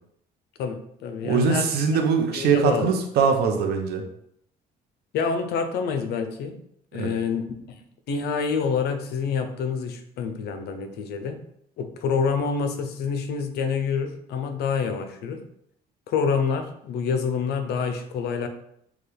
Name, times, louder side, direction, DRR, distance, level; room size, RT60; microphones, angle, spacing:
voice 1, 0.6-1.7 2.3-2.9 5.1-6.6 6.9-11.4 11.8-15.4 16.1-18.5, left 6 dB, 75° left, 7 dB, 0.7 m, -27 dB
voice 2, 1.2-4.1 6.9-7.1, right 6 dB, 70° right, 5 dB, 0.8 m, -22 dB
6.3 x 2.3 x 3.4 m, 0.72 s
cardioid pair, 110°, 17 cm